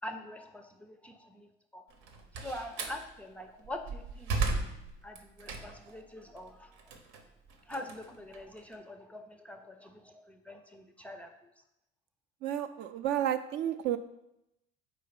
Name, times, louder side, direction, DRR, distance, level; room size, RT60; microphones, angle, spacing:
voice 1, 0.0-1.8 2.3-4.3 5.0-6.7 7.6-11.5, left 1 dB, 5° left, 5 dB, 0.4 m, -44 dB
Slam, 1.9-3.0 3.6-5.9 6.4-8.7, right 3 dB, 80° right, 1.0 m, -35 dB
voice 2, 12.4-14.0, right 11 dB, 60° right, 9 dB, 0.5 m, -31 dB
4.6 x 4.2 x 5.8 m, 0.85 s
cardioid pair, 150°, 21 cm